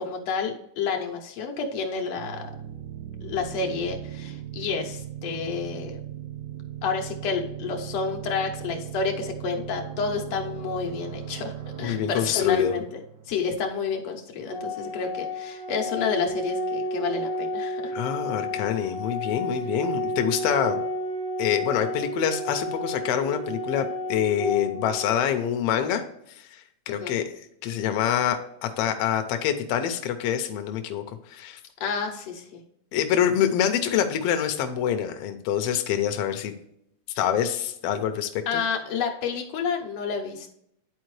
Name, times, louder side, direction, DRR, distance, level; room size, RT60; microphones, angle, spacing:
voice 1, 0.0-2.5 3.2-6.0 6.8-13.0 13.3-17.9 26.9-27.2 31.8-32.6 38.5-40.5, left 5 dB, 65° left, 2 dB, 1.9 m, -30 dB
sound 1, 2.2-13.7, right 10 dB, 75° right, 2.2 m, -38 dB
voice 2, 11.8-12.8 17.9-20.8 21.4-26.0 26.3-31.6 32.9-36.5 37.1-38.6, left 9 dB, 85° left, 7 dB, 1.3 m, -26 dB
Organ, 14.5-25.5, left 1 dB, 30° right, 2.3 m, -31 dB
10.5 x 4.4 x 3.2 m, 0.74 s
omnidirectional pair, 3.6 m